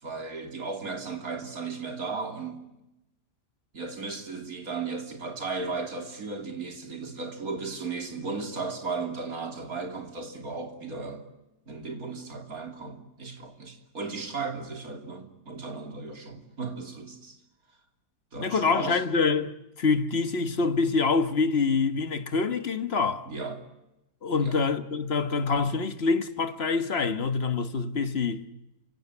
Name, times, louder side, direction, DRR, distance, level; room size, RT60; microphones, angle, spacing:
voice 1, 0.0-2.7 3.7-11.2 11.7-17.4 18.3-19.1 23.3-23.6 24.4-24.6, right 4 dB, 60° right, 3.4 m, -35 dB
voice 2, 18.4-19.5 19.8-23.2 24.2-28.4, left 4 dB, 40° left, 1.5 m, -26 dB
28.5 x 17.0 x 9.8 m
omnidirectional pair, 1.7 m